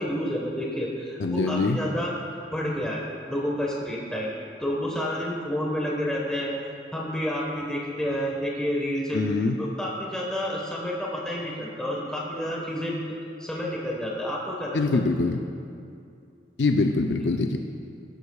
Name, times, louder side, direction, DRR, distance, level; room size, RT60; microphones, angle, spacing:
voice 1, 0.0-2.1 2.5-4.3 4.6-6.6 6.9-9.2 9.6-13.0 13.4-15.0, equal, 5° left, -3 dB, 1.3 m, -29 dB
voice 2, 1.2-1.8 9.1-9.6 14.7-15.4 16.6-17.6, left 3 dB, 80° left, 4 dB, 0.5 m, -23 dB
18.5 x 11.0 x 2.4 m, 2.4 s
head